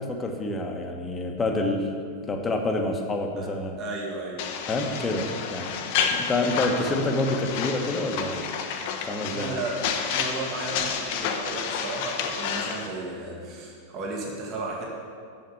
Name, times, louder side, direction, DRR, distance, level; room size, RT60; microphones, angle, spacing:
voice 1, 0.0-1.9 2.3-3.8 4.7-5.7 6.1-8.4 9.1-9.5, left 2 dB, 15° left, 3 dB, 1.3 m, -27 dB
voice 2, 3.8-4.5 9.3-14.9, right 2 dB, 35° right, -2 dB, 1.9 m, -34 dB
sound 1, 4.4-12.9, left 6 dB, 50° left, 1.0 m, -30 dB
7.7 x 7.2 x 8.5 m, 2.3 s
figure-of-eight pair, 90°, 0 cm